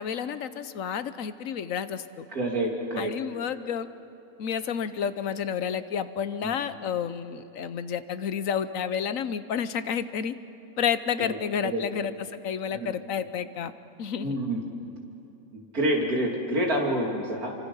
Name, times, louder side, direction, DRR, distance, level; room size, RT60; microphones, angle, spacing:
voice 1, 0.0-2.3 3.0-3.9 4.4-10.3 10.8-13.7 14.0-14.4, left 8 dB, 70° left, 12 dB, 1.2 m, -30 dB
voice 2, 2.3-3.1 6.4-6.6 11.2-11.4 11.6-11.8 12.7-12.9 14.2-14.6 15.5-17.5, right 1 dB, 90° right, 0 dB, 3.5 m, -28 dB
29.0 x 24.5 x 5.6 m, 2.9 s
omnidirectional pair, 1.5 m